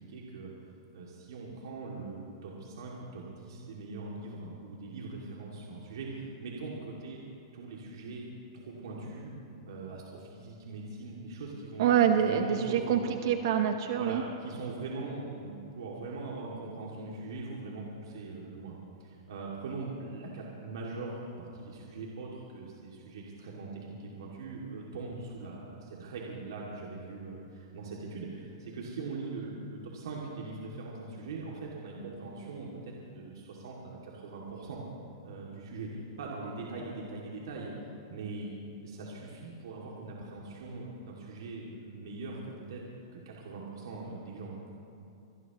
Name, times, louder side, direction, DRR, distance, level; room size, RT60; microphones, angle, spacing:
voice 1, 0.1-0.5 0.9-7.2 7.5-8.2 8.5-9.3 9.6-11.9 12.2-13.2 13.9-34.8 35.2-37.7 38.1-38.6 38.8-42.4 42.7-42.8 43.1-44.7, right 3 dB, 75° right, -3 dB, 2.4 m, -41 dB
voice 2, 11.8-13.0 13.2-14.2, right 9 dB, 60° right, 7 dB, 0.9 m, -25 dB
26.0 x 17.5 x 3.1 m, 2.7 s
hypercardioid pair, 155°, 2 cm